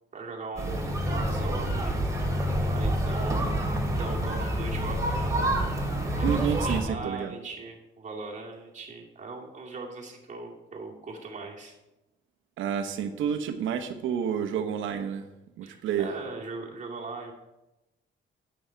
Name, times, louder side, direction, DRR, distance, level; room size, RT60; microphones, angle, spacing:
voice 1, 0.1-2.0 2.7-3.7 4.0-5.9 6.2-11.7 15.6-17.3, right 3 dB, 40° right, -1 dB, 2.3 m, -39 dB
sound 1, 0.6-6.8, right 1 dB, 15° right, 2.9 m, -27 dB
voice 2, 6.2-7.4 12.6-15.3 15.6-16.1, right 8 dB, 80° right, 7 dB, 1.0 m, -29 dB
9.0 x 7.8 x 4.5 m, 0.99 s
cardioid pair, 90°, 20 cm